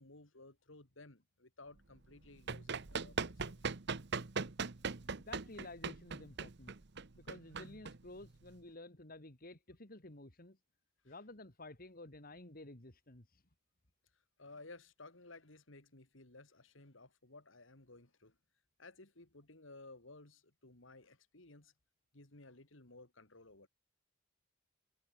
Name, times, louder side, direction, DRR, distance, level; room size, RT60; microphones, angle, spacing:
voice 1, 0.0-3.6 11.0-11.1 14.4-18.4 18.8-21.7 22.1-23.7, left 2 dB, 70° left, 3.1 m, -57 dB
Run, 2.1-8.5, right 5 dB, 55° right, 1.1 m, -40 dB
voice 2, 5.3-6.7 7.1-10.6 11.0-13.4, left 2 dB, 45° left, 2.9 m, -52 dB
head